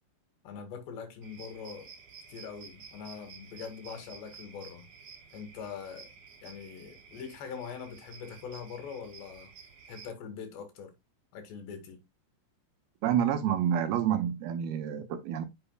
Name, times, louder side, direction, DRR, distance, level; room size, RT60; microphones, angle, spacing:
voice 1, 0.4-1.9 2.3-4.9 5.3-6.1 6.4-9.5 9.9-10.9 11.3-12.0, left 6 dB, 85° left, 4.3 m, -43 dB
sound 1, 1.2-10.1, right 6 dB, 40° right, 2.6 m, -52 dB
voice 2, 13.0-15.5, right 9 dB, 75° right, 2.6 m, -28 dB
9.4 x 7.9 x 2.3 m
omnidirectional pair, 4.8 m